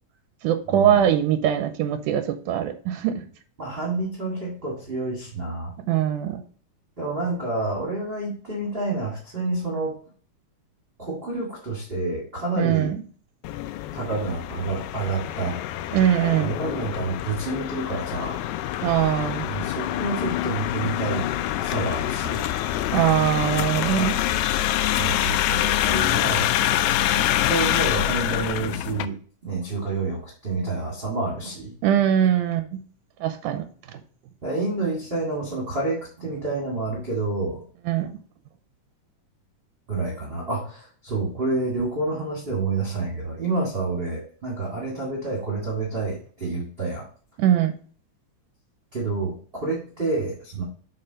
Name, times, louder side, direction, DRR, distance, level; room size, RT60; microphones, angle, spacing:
voice 1, 0.4-3.2 5.9-6.4 12.6-13.0 15.9-16.5 18.8-19.5 22.9-24.2 31.8-32.8 33.2-33.6 37.9-38.1 47.4-47.7, right 10 dB, 90° right, 8 dB, 2.2 m, -22 dB
voice 2, 3.6-5.7 7.0-9.9 11.0-12.9 13.9-15.6 16.4-18.4 19.5-21.3 21.6-22.5 24.9-26.5 27.1-29.2 29.4-31.7 34.4-37.6 39.9-47.1 48.9-50.6, right 3 dB, 20° right, -3 dB, 1.7 m, -28 dB
sound 1, 13.4-29.1, left 13 dB, 80° left, 1.8 m, -26 dB
7.7 x 4.1 x 3.9 m, 0.43 s
omnidirectional pair, 3.6 m